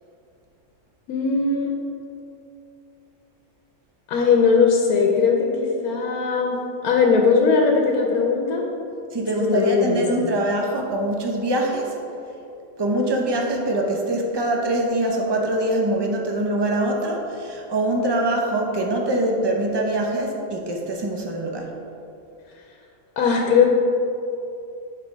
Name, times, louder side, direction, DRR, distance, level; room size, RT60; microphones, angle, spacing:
voice 1, 1.1-1.8 4.1-8.6 9.4-10.3 23.2-23.7, left 5 dB, 80° left, 1 dB, 1.2 m, -19 dB
voice 2, 9.1-12.0 12.8-21.7, right 1 dB, 30° right, 1 dB, 0.4 m, -23 dB
7.5 x 4.1 x 5.1 m, 2.7 s
omnidirectional pair, 1.6 m